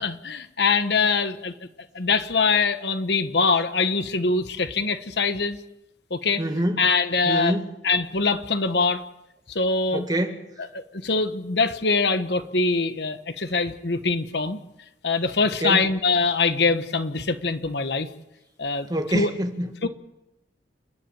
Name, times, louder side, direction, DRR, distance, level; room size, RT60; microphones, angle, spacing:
voice 1, 0.0-1.5 1.9-5.6 6.1-6.4 6.8-7.6 7.8-9.0 9.5-10.1 10.7-14.6 15.0-18.1 18.6-18.9 19.1-19.3 19.8-19.9, left 4 dB, 60° left, 10 dB, 1.2 m, -23 dB
voice 2, 6.4-6.9 7.2-7.7 9.9-10.4 15.6-15.9 18.9-19.7, right 1 dB, 20° right, 5 dB, 1.9 m, -25 dB
29.5 x 11.0 x 9.2 m, 0.90 s
head